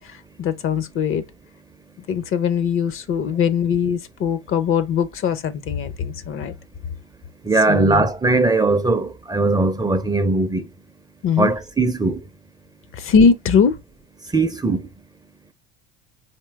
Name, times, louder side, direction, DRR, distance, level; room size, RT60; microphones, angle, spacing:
voice 1, 0.4-1.2 2.1-6.5 7.7-8.0 11.2-11.5 12.9-13.8, left 6 dB, 40° left, 0.7 m, -20 dB
voice 2, 7.4-10.7 11.4-12.2 14.3-14.9, right 3 dB, 10° right, 0.6 m, -19 dB
4.4 x 3.0 x 3.5 m
hypercardioid pair, 75°, 32 cm